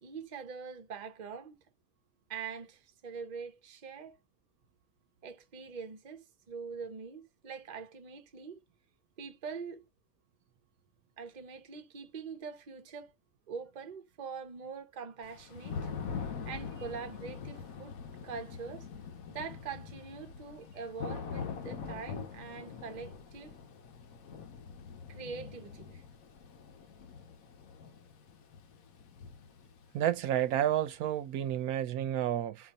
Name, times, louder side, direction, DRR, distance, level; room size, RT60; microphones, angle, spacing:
voice 1, 0.0-1.6 2.3-4.2 5.2-8.6 9.2-9.9 11.2-13.1 13.5-15.8 16.5-18.0 18.2-18.9 19.3-23.5 25.1-26.0, right 5 dB, 40° right, 0.7 m, -43 dB
Thunder / Rain, 15.2-31.0, left 6 dB, 70° left, 1.2 m, -44 dB
voice 2, 29.9-32.7, right 11 dB, 80° right, 1.1 m, -30 dB
4.5 x 2.6 x 4.1 m
omnidirectional pair, 1.6 m